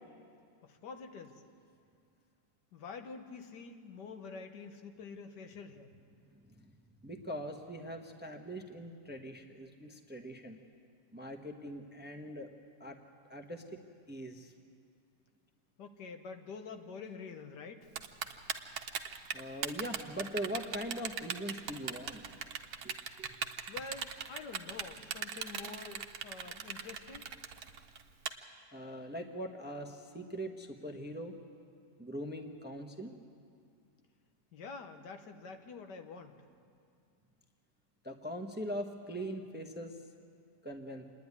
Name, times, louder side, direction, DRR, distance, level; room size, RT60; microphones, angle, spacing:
voice 1, 0.6-1.4 2.7-5.9 15.8-17.9 23.7-27.3 34.5-36.4, left 4 dB, 90° left, 6 dB, 1.7 m, -47 dB
voice 2, 6.3-6.8 7.0-10.6 11.1-12.5 12.8-13.0 13.3-14.5 19.3-22.2 22.8-23.3 28.7-31.4 32.0-33.1 38.0-40.0 40.6-41.0, equal, 10° right, 4 dB, 0.7 m, -42 dB
Typing, 18.0-28.3, right 7 dB, 70° right, 1.4 m, -38 dB
27.0 x 10.5 x 9.6 m, 2.3 s
omnidirectional pair, 1.8 m